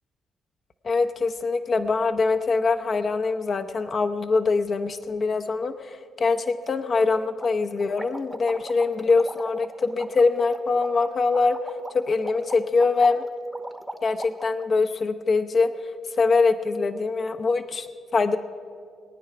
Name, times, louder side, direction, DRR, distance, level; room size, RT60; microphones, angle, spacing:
voice 1, 0.8-11.6 11.9-13.2 14.0-18.4, left 4 dB, 45° left, 7 dB, 0.7 m, -23 dB
sound 1, 6.6-6.7 7.0-7.1 7.4-14.7, right 1 dB, 5° right, 0.9 m, -40 dB
20.5 x 9.4 x 5.7 m, 2.2 s
cardioid pair, 90°, 0 cm